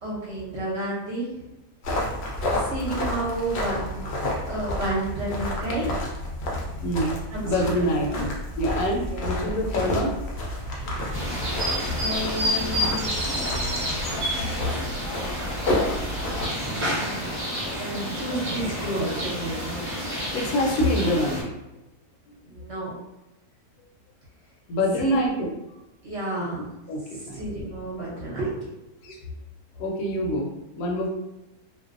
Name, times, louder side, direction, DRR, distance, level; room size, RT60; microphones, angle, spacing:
voice 1, 0.0-1.4 2.5-4.1 4.5-5.9 7.3-8.3 9.0-9.4 11.8-13.8 16.9-17.3 17.8-19.7 22.5-22.9 25.0-25.3 26.0-26.7 27.3-28.7 29.1-29.2, right 1 dB, 55° right, -6 dB, 0.9 m, -31 dB
sound 1, 1.8-16.5, left 1 dB, 60° left, 0.7 m, -30 dB
voice 2, 6.8-7.2 7.4-10.2 20.3-21.5 24.7-25.5 26.4-26.5 26.9-27.4 29.0-29.2 29.8-31.1, left 1 dB, 80° left, 0 dB, 1.0 m, -25 dB
sound 2, 10.6-14.4 16.1-19.9, equal, 80° right, 0.3 m, -32 dB
sound 3, 11.1-21.4, equal, 10° right, 0.6 m, -31 dB
2.5 x 2.1 x 2.4 m, 0.96 s
omnidirectional pair, 1.6 m